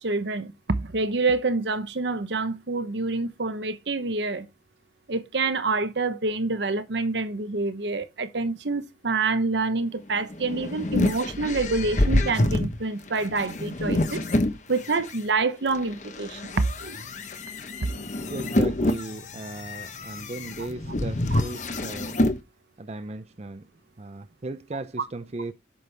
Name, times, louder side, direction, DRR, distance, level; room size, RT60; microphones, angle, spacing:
voice 1, 0.0-4.5 5.1-14.2 14.7-17.0 17.8-18.0 21.3-21.4, right 3 dB, 70° right, 0.9 m, -27 dB
sound 1, 10.1-15.2 15.7-22.4, left 1 dB, 40° left, 1.0 m, -27 dB
voice 2, 18.3-22.2 22.8-23.7 24.0-25.5, right 2 dB, 35° right, 0.5 m, -36 dB
8.3 x 6.3 x 3.4 m
head